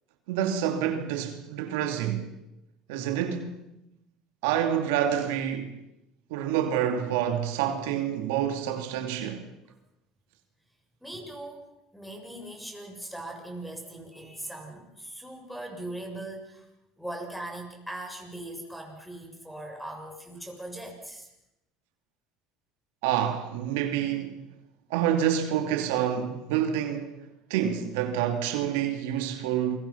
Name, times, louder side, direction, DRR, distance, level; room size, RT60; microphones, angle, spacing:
voice 1, 0.3-2.2 2.9-3.6 4.4-5.7 6.3-9.4 23.0-24.3 24.9-27.2 27.5-29.8, right 9 dB, 85° right, 2.9 m, -27 dB
voice 2, 11.0-16.7 17.0-21.3, right 1 dB, ahead, 7.2 m, -40 dB
28.5 x 23.5 x 5.8 m
supercardioid pair, 105°, 0 cm